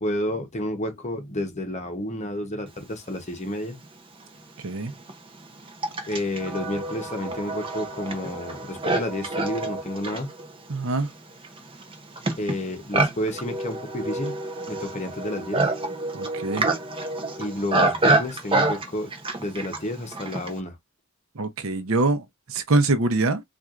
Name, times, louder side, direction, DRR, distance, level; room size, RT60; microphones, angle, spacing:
voice 1, 0.0-3.8 6.1-10.3 12.4-14.4 14.7-15.7 17.4-19.1 19.4-20.7, left 1 dB, 35° left, 0.9 m, -30 dB
Livestock farm animals working animals, 3.8-3.9 4.7-20.6, right 2 dB, 25° right, 0.7 m, -27 dB
voice 2, 4.6-4.9 10.7-11.1 16.1-16.7 21.4-23.4, right 2 dB, 70° right, 0.7 m, -24 dB
4.4 x 2.5 x 2.4 m
head